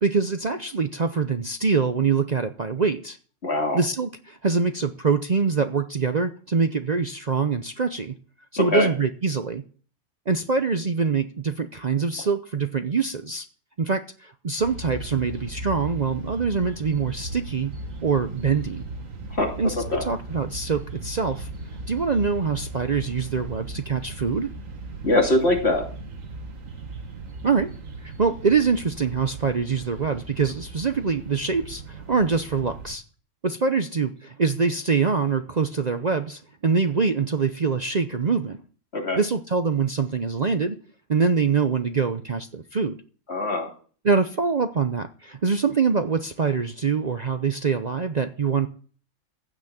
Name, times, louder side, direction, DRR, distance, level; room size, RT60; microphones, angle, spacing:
voice 1, 0.0-3.2 3.7-8.2 8.5-9.6 10.3-13.5 13.8-17.7 18.0-18.9 19.6-21.5 21.9-24.5 27.4-27.7 28.0-33.0 33.4-38.6 39.1-40.8 41.1-43.0 44.0-48.7, right 5 dB, 40° right, 8 dB, 0.7 m, -24 dB
voice 2, 3.4-3.8 8.6-8.9 19.3-19.5 19.9-20.0 25.0-25.8 38.9-39.2 43.3-43.7, left 2 dB, 55° left, 1 dB, 3.2 m, -22 dB
sound 1, 14.6-33.0, right 3 dB, 90° right, 2.0 m, -37 dB
15.5 x 6.1 x 8.8 m, 0.42 s
omnidirectional pair, 1.3 m